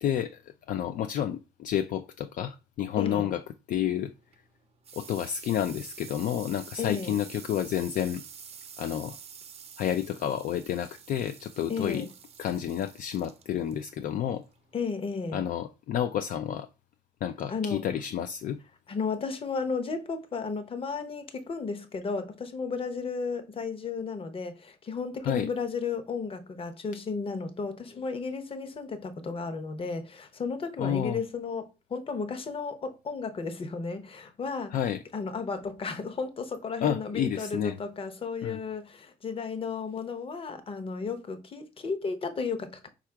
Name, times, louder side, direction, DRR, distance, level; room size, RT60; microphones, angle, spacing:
voice 1, 0.0-3.4 3.7-4.1 5.0-8.2 8.8-9.2 9.8-12.1 12.4-14.4 15.3-16.7 17.2-18.6 25.2-25.5 30.8-31.2 34.7-35.0 36.8-37.8 38.4-38.6, left 10 dB, 55° left, 0.4 m, -30 dB
sound 1, 4.1-15.4, right 7 dB, 35° right, 0.6 m, -48 dB
voice 2, 6.8-7.1 11.7-12.1 14.7-15.4 17.5-17.8 18.9-34.8 35.1-42.9, left 4 dB, 35° left, 0.8 m, -34 dB
4.6 x 2.4 x 4.5 m
cardioid pair, 110°, 17 cm